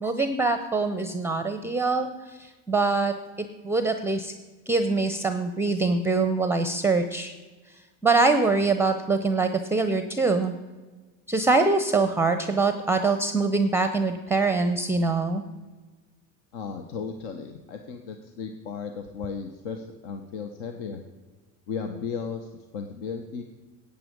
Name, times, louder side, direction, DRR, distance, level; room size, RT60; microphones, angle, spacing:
voice 1, 0.0-4.3 4.7-7.3 8.0-10.5 11.3-15.4, right 3 dB, 5° right, 9 dB, 0.5 m, -24 dB
voice 2, 16.5-21.0 21.7-23.4, left 6 dB, 70° left, 6 dB, 1.1 m, -35 dB
11.0 x 8.4 x 5.2 m, 1.3 s
supercardioid pair, 100°, 40 cm